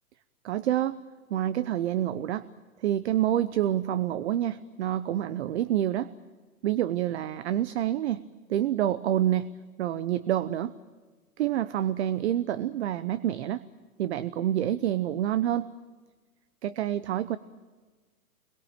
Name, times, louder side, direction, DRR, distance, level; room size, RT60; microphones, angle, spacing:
voice 1, 0.4-1.0 1.3-2.5 2.8-6.1 6.6-8.2 8.5-9.5 9.8-10.7 11.4-13.6 14.0-15.7 16.6-17.4, right 12 dB, 50° right, 15 dB, 0.8 m, -27 dB
26.0 x 22.5 x 9.0 m, 1.4 s
hypercardioid pair, 130°, 44 cm